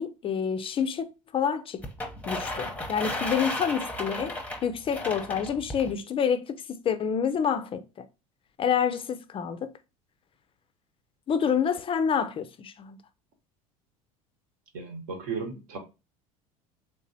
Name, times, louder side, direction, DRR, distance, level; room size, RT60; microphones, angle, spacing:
voice 1, 0.0-1.8 2.3-4.4 4.6-8.1 8.6-9.7 11.3-13.0, left 7 dB, 30° left, 0.3 m, -28 dB
sound 1, 1.8-5.9, left 1 dB, 10° left, 0.7 m, -34 dB
voice 2, 14.7-15.8, right 5 dB, 70° right, 1.1 m, -35 dB
3.3 x 2.9 x 2.6 m
hypercardioid pair, 75°, 18 cm